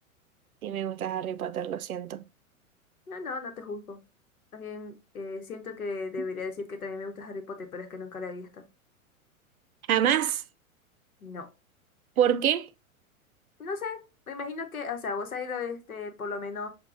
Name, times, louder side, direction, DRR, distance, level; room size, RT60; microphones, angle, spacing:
voice 1, 0.6-2.2 9.9-10.4 12.2-12.7, right 10 dB, 80° right, 0.5 m, -26 dB
voice 2, 3.1-4.0 4.5-8.6 11.2-11.5 13.6-14.0 14.3-16.7, left 4 dB, 80° left, 0.9 m, -36 dB
6.5 x 2.3 x 2.4 m
figure-of-eight pair, 105°, 42 cm